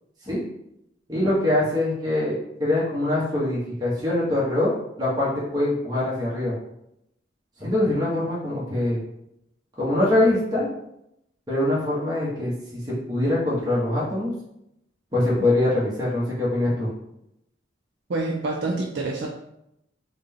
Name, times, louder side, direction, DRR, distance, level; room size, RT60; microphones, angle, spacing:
voice 1, 1.1-4.7 5.0-6.6 7.6-9.0 9.8-10.6 11.5-14.3 15.1-16.9, left 1 dB, 20° right, -7 dB, 0.9 m, -23 dB
voice 2, 18.1-19.3, right 2 dB, 65° right, -1 dB, 0.4 m, -27 dB
3.7 x 2.2 x 3.5 m, 0.80 s
head